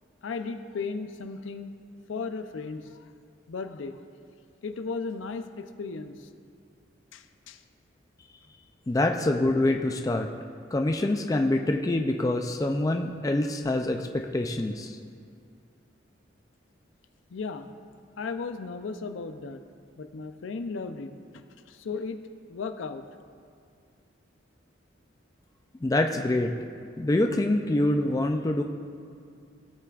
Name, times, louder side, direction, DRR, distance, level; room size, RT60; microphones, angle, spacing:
voice 1, 0.2-1.7 2.1-3.0 3.5-4.1 4.6-6.3 7.1-7.6 17.3-17.7 18.2-19.6 20.0-22.2 22.5-23.0, left 4 dB, 75° left, 9 dB, 0.5 m, -36 dB
voice 2, 8.9-10.3 10.7-15.0 25.8-26.5 27.0-28.6, left 1 dB, 20° left, 4 dB, 0.3 m, -25 dB
16.5 x 5.8 x 2.4 m, 2.3 s
head